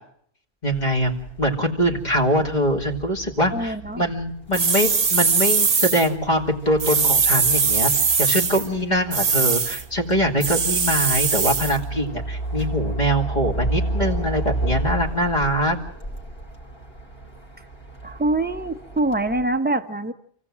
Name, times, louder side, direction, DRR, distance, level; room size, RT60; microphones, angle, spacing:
voice 1, 0.6-7.9 8.2-15.8, equal, 45° left, -1 dB, 2.5 m, -23 dB
sound 1, 0.7-19.4, right 2 dB, 65° left, 3.0 m, -33 dB
voice 2, 3.5-4.0 18.0-20.1, right 2 dB, 10° right, 8 dB, 1.0 m, -24 dB
sound 2, 4.5-6.1 6.8-8.7 9.1-9.8 10.4-11.8, right 5 dB, 75° right, 1.5 m, -21 dB
28.0 x 16.0 x 7.5 m, 0.67 s
omnidirectional pair, 1.1 m